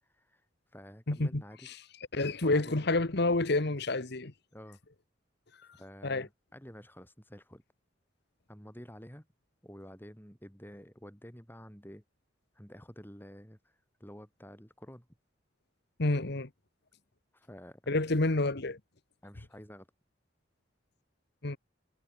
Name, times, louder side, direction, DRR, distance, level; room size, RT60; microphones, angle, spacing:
voice 1, 0.0-1.7 2.4-2.9 4.5-4.8 5.6-7.6 8.5-9.3 9.6-12.0 12.5-15.1 17.3-17.8 19.2-19.9, equal, 10° left, 7.1 m, -50 dB
voice 2, 1.1-1.7 2.1-4.3 6.0-6.3 16.0-16.5 17.9-18.8 21.4-21.6, left 2 dB, 60° left, 1.4 m, -29 dB
head